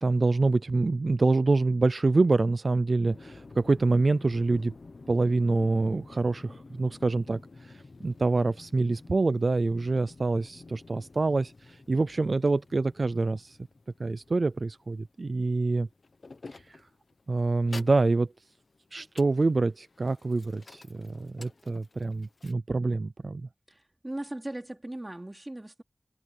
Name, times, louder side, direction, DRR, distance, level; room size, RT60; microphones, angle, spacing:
voice 1, 0.0-4.7 5.1-13.6 14.0-15.9 16.5-16.8 17.3-18.3 18.9-23.5, right 3 dB, 75° right, 0.4 m, -26 dB
sound 1, 3.1-22.5, left 3 dB, 90° left, 1.1 m, -50 dB
voice 2, 23.7-25.8, right 1 dB, 30° right, 3.6 m, -38 dB
wide cardioid pair, 65°, 0 cm